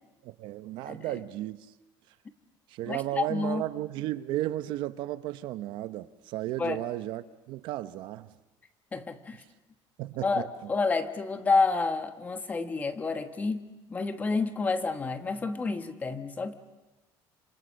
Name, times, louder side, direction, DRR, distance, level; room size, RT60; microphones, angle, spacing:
voice 1, 0.2-1.6 2.7-8.3 10.0-10.7, right 15 dB, 65° right, 0.9 m, -34 dB
voice 2, 0.8-1.2 2.8-3.7 6.6-6.8 8.9-9.4 10.2-16.5, left 4 dB, 20° left, 1.2 m, -29 dB
28.5 x 26.5 x 6.5 m
cardioid pair, 170°, 9 cm